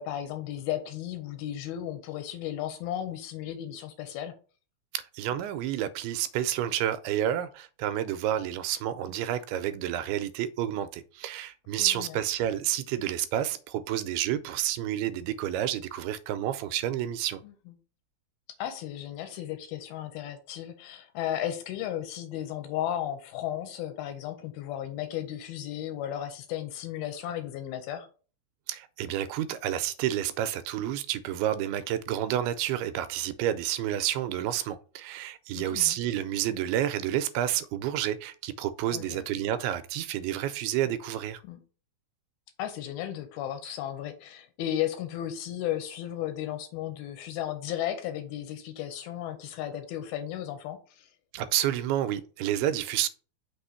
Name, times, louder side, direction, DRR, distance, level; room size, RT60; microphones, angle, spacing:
voice 1, 0.0-4.3 11.8-12.2 17.4-17.5 18.6-28.1 35.5-36.0 38.9-39.2 41.4-41.6 42.6-51.1, left 11 dB, 80° left, 2.6 m, -34 dB
voice 2, 4.9-17.4 28.7-41.4 51.3-53.1, right 11 dB, 85° right, 2.4 m, -30 dB
6.2 x 3.0 x 5.6 m
omnidirectional pair, 4.5 m